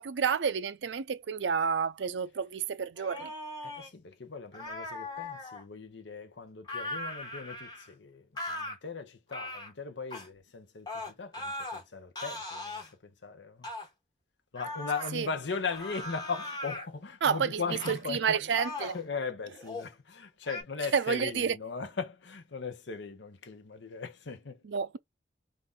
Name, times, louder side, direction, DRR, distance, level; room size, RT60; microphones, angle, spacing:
voice 1, 0.0-3.3 15.1-15.3 17.2-19.0 20.9-21.6 24.6-25.0, right 6 dB, 75° right, 0.4 m, -30 dB
sound 1, 3.0-3.9 4.5-5.6 6.7-7.9 8.4-8.8 9.3-9.7 10.1-10.3 10.9-11.8 12.2-12.9 13.6-13.9 14.6-15.1 15.7-16.9 17.8-18.0 18.5-19.0 19.6-19.9 20.5-20.6, left 2 dB, 25° left, 1.2 m, -39 dB
voice 2, 3.6-13.7 14.5-18.4 18.9-24.6, left 5 dB, 75° left, 0.8 m, -38 dB
3.7 x 2.6 x 3.7 m
head